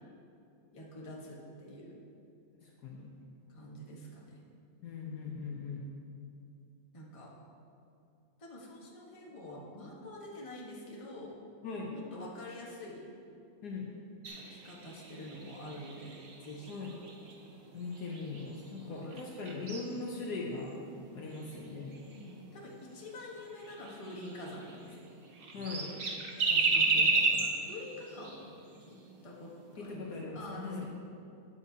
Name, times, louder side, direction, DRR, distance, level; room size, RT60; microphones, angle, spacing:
voice 1, 0.7-2.0 3.5-4.4 6.9-7.3 8.4-11.3 11.9-13.0 14.3-16.8 18.8-19.2 22.1-25.1 26.4-28.5 28.9-29.0 29.2-30.9, left 1 dB, 20° left, -4 dB, 1.2 m, -46 dB
voice 2, 2.6-3.1 4.8-5.9 11.6-12.0 13.6-13.9 16.7-16.9 17.7-20.8 21.1-21.9 25.5-25.9 29.8-30.9, left 4 dB, 60° left, -1 dB, 1.3 m, -40 dB
sound 1, 14.2-18.8 19.1-22.4 22.9-23.0 23.3-23.4 23.6-25.1 25.3-28.8 29.1-29.2 29.6-29.9, right 3 dB, 50° right, 0.7 m, -34 dB
13.0 x 8.5 x 2.8 m, 2.5 s
omnidirectional pair, 2.1 m